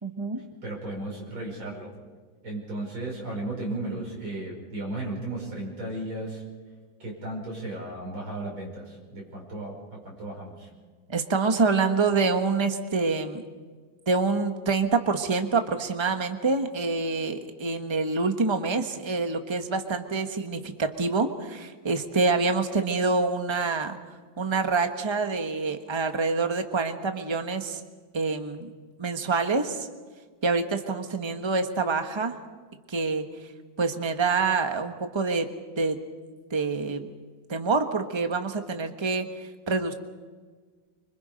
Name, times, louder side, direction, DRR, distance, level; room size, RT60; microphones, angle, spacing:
voice 1, 0.0-0.4 11.1-13.4 14.1-24.0 24.4-27.8 28.1-28.7 29.0-29.9 30.4-32.4 32.9-33.3 33.8-35.5 35.8-36.0 36.5-37.1 37.5-39.3 39.7-39.9, right 4 dB, 15° right, 6 dB, 1.1 m, -26 dB
voice 2, 0.6-1.9 2.4-6.4 7.0-10.7, right 2 dB, 85° right, -2 dB, 6.3 m, -35 dB
25.5 x 25.0 x 5.2 m, 1.5 s
omnidirectional pair, 2.2 m